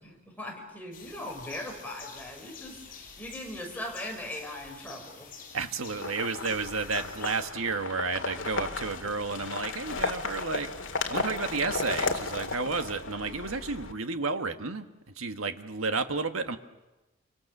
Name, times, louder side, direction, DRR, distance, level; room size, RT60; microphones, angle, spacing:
voice 1, 0.0-5.3, left 1 dB, 10° left, 0 dB, 5.6 m, -40 dB
sound 1, 0.9-7.5, left 6 dB, 45° left, 6.2 m, -48 dB
voice 2, 5.5-10.7 11.1-14.9 15.2-16.6, right 4 dB, 90° right, 7 dB, 1.6 m, -31 dB
sound 2, 5.9-13.9, left 4 dB, 65° left, 2.1 m, -34 dB
29.0 x 25.0 x 6.7 m, 1.0 s
head